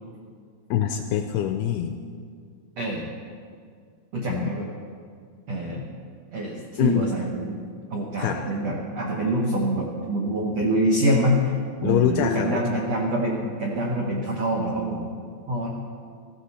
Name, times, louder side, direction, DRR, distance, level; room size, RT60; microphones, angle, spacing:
voice 1, 0.7-2.0 4.3-4.5 6.8-7.0 8.2-8.4 11.8-12.6, left 10 dB, 85° left, 6 dB, 2.3 m, -24 dB
voice 2, 4.1-4.7 5.5-5.9 6.3-7.6 7.9-11.5 11.8-15.1 15.5-15.7, right 1 dB, 85° right, -1 dB, 1.4 m, -25 dB
15.0 x 14.5 x 4.2 m, 2.1 s
omnidirectional pair, 5.0 m